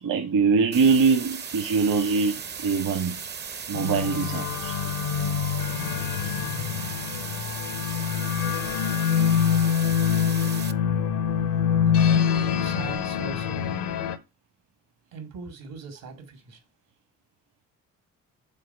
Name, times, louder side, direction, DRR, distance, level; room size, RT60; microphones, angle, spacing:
voice 1, 0.0-3.2 3.7-4.8, right 5 dB, 60° right, 1.2 m, -23 dB
sound 1, 0.7-10.7, right 6 dB, 30° right, 0.5 m, -37 dB
sound 2, 3.7-14.2, left 8 dB, 80° left, 0.9 m, -25 dB
voice 2, 11.8-13.8 15.1-16.6, right 4 dB, 75° right, 2.1 m, -40 dB
5.7 x 3.9 x 5.3 m
supercardioid pair, 65°, 34 cm